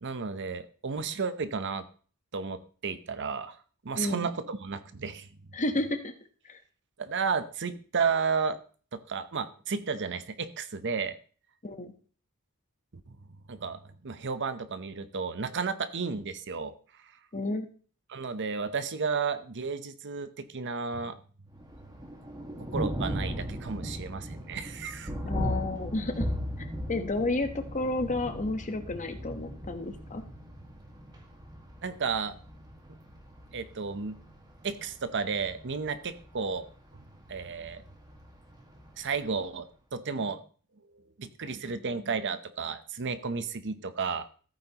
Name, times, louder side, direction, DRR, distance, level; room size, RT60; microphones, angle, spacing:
voice 1, 0.0-1.9 2.3-5.3 7.0-8.6 8.9-11.2 13.1-13.2 13.5-17.2 18.1-21.2 22.6-25.1 31.8-32.4 32.9-33.0 33.5-34.2 34.6-36.7 36.9-37.0 37.3-37.8 39.0-40.4 40.9-44.3, right 5 dB, 55° right, 12 dB, 0.8 m, -33 dB
voice 2, 4.0-4.3 5.5-6.1 6.5-6.6 11.6-11.9 17.3-17.7 25.2-26.3 26.9-30.2, left 2 dB, 35° left, 7 dB, 1.1 m, -31 dB
Thunder, 21.5-39.5, equal, 20° right, 1.7 m, -38 dB
14.5 x 8.9 x 2.9 m, 0.41 s
head